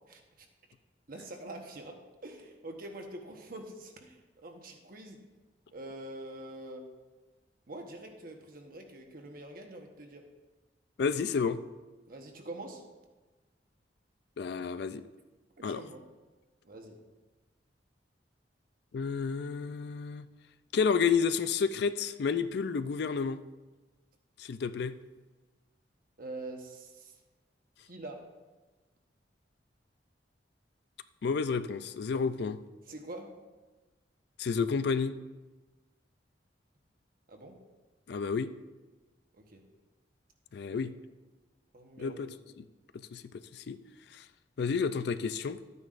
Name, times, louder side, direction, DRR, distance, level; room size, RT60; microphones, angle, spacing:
voice 1, 0.1-0.5 1.1-5.2 5.7-6.9 7.7-10.3 12.1-12.8 15.6-16.0 16.6-17.0 26.2-27.2 27.9-28.3 32.9-33.4 37.3-37.6 39.3-39.7 40.7-40.8 41.7-42.2, right 1 dB, 55° right, 3 dB, 1.2 m, -45 dB
voice 2, 11.0-11.6 14.4-15.0 15.6-15.8 18.9-20.3 20.7-23.4 24.4-24.9 31.2-32.6 34.4-35.1 38.1-38.5 40.5-40.9 42.0-42.6 43.1-43.2 43.5-43.8 44.1-44.2 44.6-45.6, left 5 dB, 65° left, 12 dB, 0.4 m, -30 dB
12.0 x 9.4 x 2.5 m, 1.2 s
head